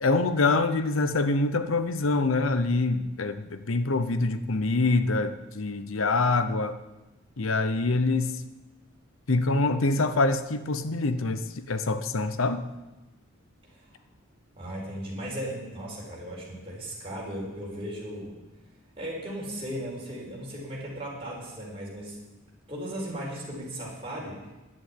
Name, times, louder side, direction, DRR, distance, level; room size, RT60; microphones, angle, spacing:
voice 1, 0.0-6.8 7.4-8.4 9.3-12.6, left 3 dB, 80° left, 11 dB, 0.9 m, -25 dB
voice 2, 14.6-18.4 19.0-22.2 22.7-24.4, equal, 25° right, -4 dB, 4.6 m, -36 dB
11.0 x 8.8 x 9.6 m, 1.0 s
head